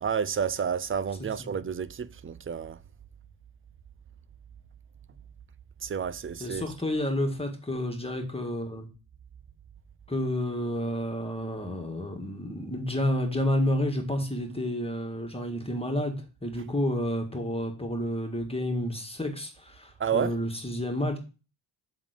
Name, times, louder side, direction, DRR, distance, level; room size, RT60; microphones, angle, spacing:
voice 1, 0.0-2.8 5.8-6.6 20.0-20.4, right 7 dB, 30° right, 0.5 m, -30 dB
voice 2, 1.2-1.6 6.4-8.9 10.1-21.2, left 1 dB, 10° left, 1.8 m, -30 dB
7.4 x 3.7 x 5.1 m
cardioid pair, 75°, 47 cm